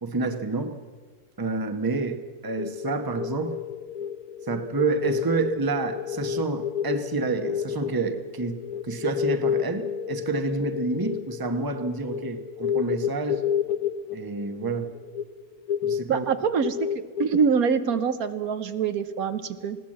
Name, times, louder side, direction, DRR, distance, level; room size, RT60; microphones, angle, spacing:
voice 1, 0.0-0.8 1.4-3.6 4.5-13.4 14.1-14.9 15.8-16.2, right 3 dB, 15° right, 8 dB, 1.0 m, -29 dB
sound 1, 2.6-18.0, left 9 dB, 70° left, 1.3 m, -31 dB
voice 2, 16.1-19.8, right 6 dB, 75° right, 11 dB, 1.4 m, -25 dB
20.5 x 17.0 x 7.6 m, 1.5 s
omnidirectional pair, 1.6 m